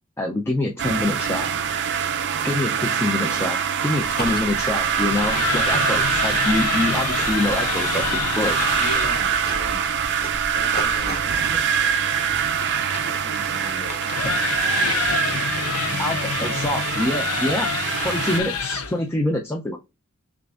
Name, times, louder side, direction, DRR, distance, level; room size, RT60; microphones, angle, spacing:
voice 1, 0.2-1.5 2.4-3.6 3.8-8.6 14.2-14.3 16.0-17.7 18.0-19.8, left 2 dB, 10° left, 0.4 m, -25 dB
sound 1, 0.8-18.4, right 7 dB, 50° right, 0.4 m, -24 dB
voice 2, 2.7-3.4 8.8-10.0 10.5-11.3 13.0-14.0 15.1-16.2, equal, 25° left, 2.1 m, -38 dB
sound 2, 4.0-11.2, left 1 dB, 45° left, 1.1 m, -36 dB
sound 3, 5.1-9.2 11.8-19.0, left 7 dB, 70° left, 0.6 m, -28 dB
6.4 x 2.5 x 2.4 m
head